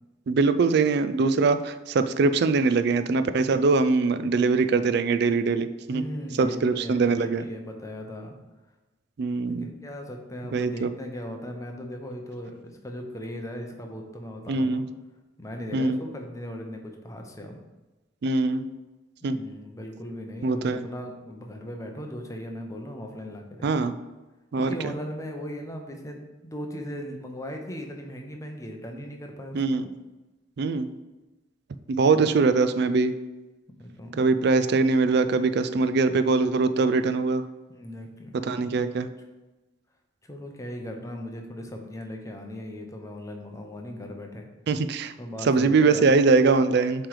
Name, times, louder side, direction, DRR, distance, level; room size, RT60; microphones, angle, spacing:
voice 1, 0.3-6.0 6.4-7.5 9.2-9.7 10.5-10.9 14.5-14.8 15.7-16.0 18.2-18.6 19.2-19.4 20.4-20.8 23.6-23.9 24.5-24.9 29.5-29.8 30.6-30.9 31.9-33.1 34.2-37.4 38.3-39.1 44.7-45.1 45.4-47.1, right 4 dB, 55° right, 11 dB, 0.3 m, -22 dB
voice 2, 5.9-8.3 9.4-12.5 12.8-14.8 15.4-17.6 19.2-23.8 24.6-29.8 32.4-32.6 33.8-34.2 37.7-38.9 40.2-44.5 45.2-46.3, equal, 15° left, 2 dB, 0.7 m, -38 dB
7.5 x 3.2 x 4.7 m, 1.1 s
head